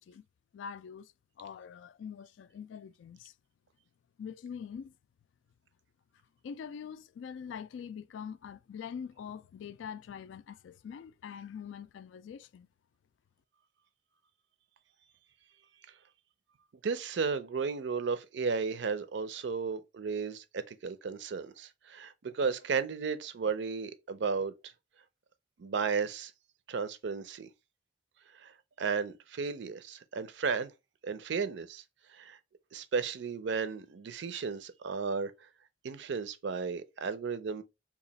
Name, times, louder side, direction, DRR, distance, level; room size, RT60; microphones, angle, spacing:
voice 1, 0.5-1.1 1.4-3.3 4.2-4.9 6.4-12.7, left 7 dB, 80° left, 0.3 m, -44 dB
voice 2, 16.8-24.5 25.6-26.3 26.7-27.5 28.3-30.7 31.0-31.8 32.1-32.4 32.7-35.3 35.8-37.6, right 5 dB, 65° right, 0.4 m, -34 dB
2.9 x 2.4 x 3.9 m
head